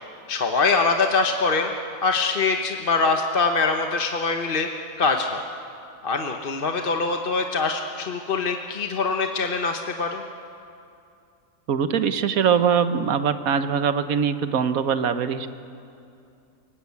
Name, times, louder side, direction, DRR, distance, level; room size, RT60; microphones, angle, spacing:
voice 1, 0.3-1.7 2.0-4.7 5.0-5.4 6.0-10.2, left 4 dB, 45° left, 4 dB, 1.1 m, -23 dB
voice 2, 11.7-15.5, right 7 dB, 80° right, 11 dB, 1.4 m, -22 dB
29.5 x 18.0 x 8.4 m, 2.6 s
omnidirectional pair, 1.4 m